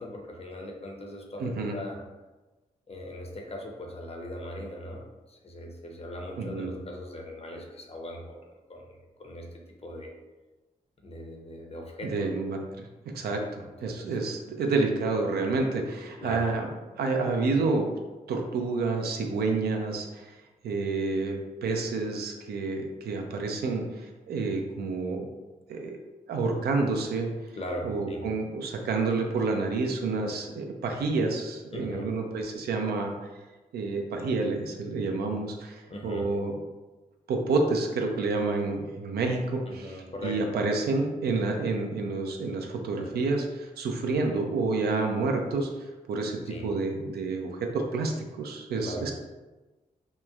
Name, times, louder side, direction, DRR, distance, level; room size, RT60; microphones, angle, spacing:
voice 1, 0.0-2.0 2.9-10.1 11.0-12.3 13.3-13.4 13.8-14.2 16.2-16.5 27.5-28.3 31.7-32.1 35.8-36.3 39.7-40.4 46.4-46.7 48.8-49.1, left 1 dB, 40° left, 1 dB, 0.6 m, -40 dB
voice 2, 1.4-1.8 6.4-6.7 12.0-16.7 17.0-17.9 18.3-20.4 20.6-25.3 25.7-26.0 26.3-27.3 27.8-33.1 33.7-36.6 37.3-45.7 46.1-49.1, right 3 dB, 80° right, 3 dB, 0.4 m, -29 dB
2.9 x 2.1 x 2.3 m, 1.2 s
supercardioid pair, 45°, 16 cm